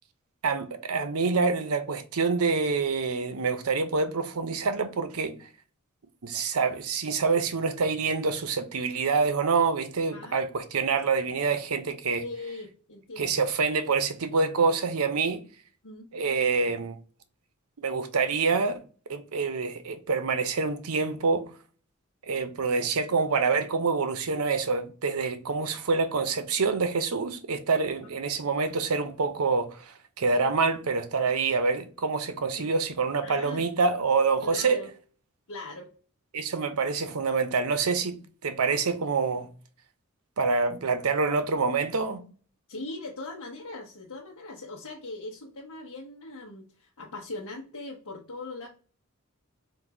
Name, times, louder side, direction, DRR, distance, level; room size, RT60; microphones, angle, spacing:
voice 1, 0.4-5.4 6.2-12.2 13.2-15.4 16.1-17.0 17.8-18.8 19.1-21.5 22.3-34.8 36.3-38.2 38.4-39.5 40.4-42.2, right 4 dB, 85° right, 0.7 m, -26 dB
voice 2, 12.2-13.4 15.8-16.1 32.6-32.7 33.2-33.6 34.4-34.9 35.5-35.9 42.7-48.7, left 2 dB, 90° left, 1.0 m, -40 dB
3.9 x 2.6 x 4.7 m
head